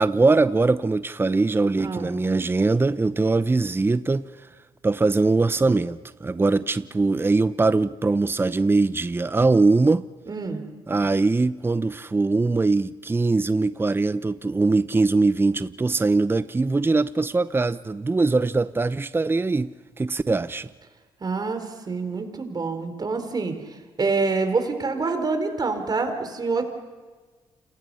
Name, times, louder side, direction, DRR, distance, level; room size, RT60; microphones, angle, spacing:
voice 1, 0.0-4.3 4.8-10.1 10.9-19.7 20.0-20.7, right 3 dB, 20° right, 0.8 m, -21 dB
voice 2, 1.8-2.1 10.3-10.6 11.0-11.1 21.2-23.6 24.0-26.7, right 4 dB, 35° right, 4.5 m, -26 dB
29.5 x 27.0 x 5.7 m
hypercardioid pair, 50°, 11 cm